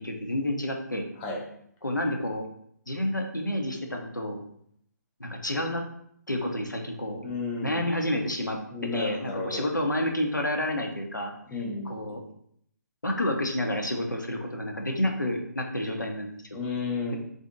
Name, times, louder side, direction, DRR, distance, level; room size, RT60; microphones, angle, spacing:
voice 1, 0.0-1.0 1.8-2.4 2.9-4.4 5.2-5.8 6.3-7.2 7.6-8.6 8.9-11.3 11.9-12.2 13.0-16.6, left 1 dB, 85° left, 2 dB, 0.7 m, -29 dB
voice 2, 7.2-7.9 8.7-9.6 11.5-12.2 16.5-17.2, left 4 dB, 15° left, -1 dB, 0.5 m, -33 dB
3.5 x 2.6 x 3.6 m, 0.70 s
figure-of-eight pair, 140°, 10 cm